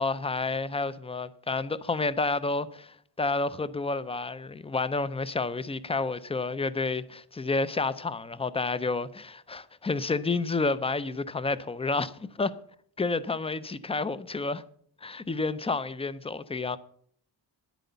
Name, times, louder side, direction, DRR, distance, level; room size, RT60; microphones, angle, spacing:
voice 1, 0.0-12.5 13.0-14.6 15.0-16.8, left 3 dB, 15° left, 0.4 m, -30 dB
10.0 x 9.1 x 6.8 m
wide cardioid pair, 160°, 45 cm